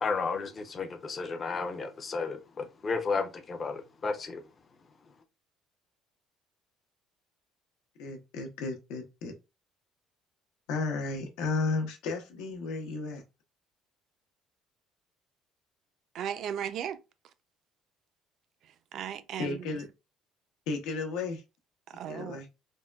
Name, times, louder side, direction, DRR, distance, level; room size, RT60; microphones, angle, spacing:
voice 1, 0.0-4.4, left 4 dB, 25° left, 0.4 m, -33 dB
voice 2, 8.0-9.3 10.7-13.2 19.4-19.8 20.7-21.4 22.1-22.5, left 3 dB, 85° left, 0.7 m, -33 dB
voice 3, 16.1-17.0 18.9-19.7 21.9-22.4, right 9 dB, 50° right, 0.3 m, -36 dB
3.5 x 2.2 x 2.2 m
cardioid pair, 160°, 0 cm